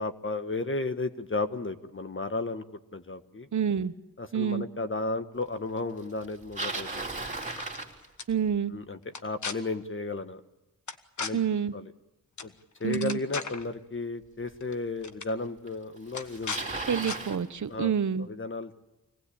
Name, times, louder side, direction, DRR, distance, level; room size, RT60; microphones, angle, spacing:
voice 1, 0.0-3.5 4.2-7.3 8.7-10.4 11.2-11.4 11.7-11.9 12.4-12.5 12.8-16.8 17.7-18.8, left 3 dB, 35° left, 9 dB, 1.5 m, -34 dB
voice 2, 3.5-3.9 4.3-4.7 8.3-8.7 11.3-11.7 12.8-13.2 16.9-18.3, right 7 dB, 55° right, 13 dB, 1.0 m, -28 dB
Bicycle, 6.2-8.6 13.6-13.7 14.5-14.6 15.7-15.8 16.0-17.4, right 2 dB, 20° right, 3.5 m, -36 dB
sound 1, 7.3-7.8 8.2-8.3 9.1-9.5 10.9-11.3 12.4-12.5 12.8-13.6 14.6-14.7 15.0-15.3 16.1-16.6 17.0-17.2, left 5 dB, 55° left, 1.5 m, -36 dB
25.5 x 18.5 x 8.6 m, 1.0 s
cardioid pair, 70°, 34 cm